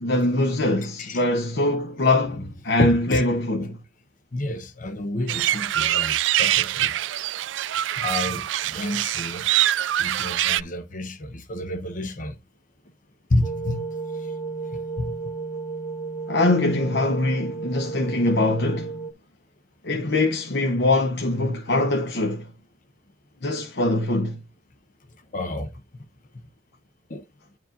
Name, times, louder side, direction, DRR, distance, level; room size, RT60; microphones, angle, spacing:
voice 1, 0.0-3.8 16.3-18.9 19.8-22.5 23.4-24.4, left 2 dB, 65° left, 1.1 m, -23 dB
voice 2, 0.8-1.2 3.1-3.2 4.3-6.9 8.0-9.5 10.0-12.4 13.3-13.9 14.7-15.2 25.3-25.7 27.1-27.2, left 1 dB, 45° left, 0.9 m, -30 dB
sound 1, 5.3-10.6, right 13 dB, 80° right, 0.3 m, -24 dB
sound 2, 13.4-19.1, right 4 dB, 20° left, 0.7 m, -33 dB
10.5 x 4.9 x 2.6 m
head